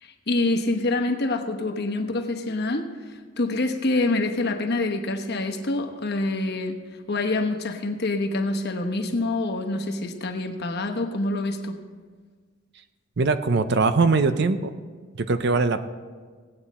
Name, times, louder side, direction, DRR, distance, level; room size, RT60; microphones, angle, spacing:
voice 1, 0.0-6.8 7.1-11.8, left 2 dB, 50° left, 5 dB, 1.0 m, -26 dB
voice 2, 13.2-14.7 15.1-15.8, right 3 dB, 55° right, 11 dB, 0.5 m, -21 dB
17.0 x 8.8 x 4.2 m, 1.5 s
head